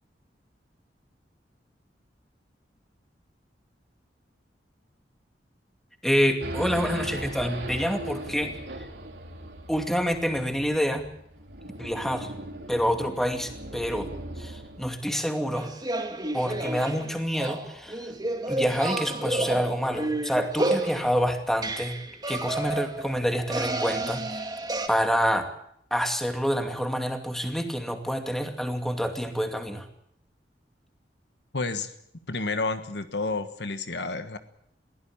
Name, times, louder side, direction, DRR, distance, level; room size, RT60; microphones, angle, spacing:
voice 1, 6.0-8.5 9.7-11.1 11.8-12.3 12.7-14.1 14.4-15.7 16.3-18.1 18.5-22.0 22.3-24.4 24.9-25.5 25.9-29.9, equal, ahead, 5 dB, 2.5 m, -27 dB
Race car auto racing / Idling / Accelerating revving vroom, 6.4-15.0, right 1 dB, 85° right, 3.8 m, -38 dB
sound 1, 15.5-24.9, right 2 dB, 25° right, 2.4 m, -31 dB
voice 2, 31.5-31.9 32.3-34.4, left 3 dB, 70° left, 10 dB, 1.5 m, -30 dB
22.5 x 16.0 x 8.8 m, 0.73 s
head